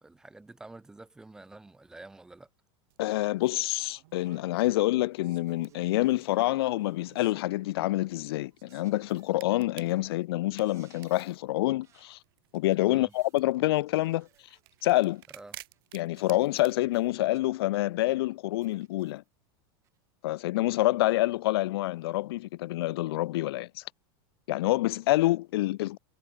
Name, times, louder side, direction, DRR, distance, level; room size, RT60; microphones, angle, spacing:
voice 1, 0.0-2.5 12.9-13.1 15.3-15.6, right 2 dB, 5° right, 0.7 m, -48 dB
sound 1, 2.9-16.7, right 18 dB, 70° right, 1.0 m, -55 dB
voice 2, 3.0-12.2 12.5-14.3 14.8-15.2 15.9-19.2 20.2-23.8 24.5-26.0, left 17 dB, 90° left, 0.4 m, -27 dB
sound 2, 3.0-3.7 4.2-4.9 5.3-7.2 8.0-9.5 9.9-10.2 10.5-11.5 11.8-12.2 12.8-13.5 13.9-15.5 15.7-15.9 16.1-17.9 18.6-19.3 19.8-20.0 21.1-21.2, right 11 dB, 25° right, 2.2 m, -66 dB
supercardioid pair, 175°, 12 cm